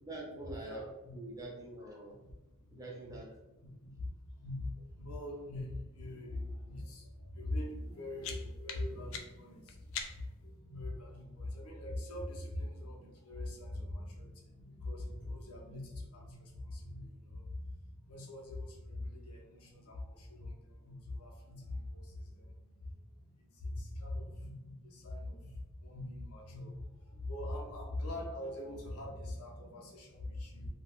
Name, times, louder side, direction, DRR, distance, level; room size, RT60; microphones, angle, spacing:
voice 1, 0.0-0.8 1.1-2.2 2.7-3.3 8.9-9.0, right 2 dB, 15° right, -2 dB, 0.5 m, -45 dB
voice 2, 0.6-1.2 2.1-2.8 3.1-3.2 3.6-30.7, left 1 dB, 85° left, -2 dB, 0.8 m, -43 dB
sound 1, 7.8-10.5, left 6 dB, 65° left, 0.4 m, -45 dB
2.4 x 2.2 x 3.4 m, 0.99 s
head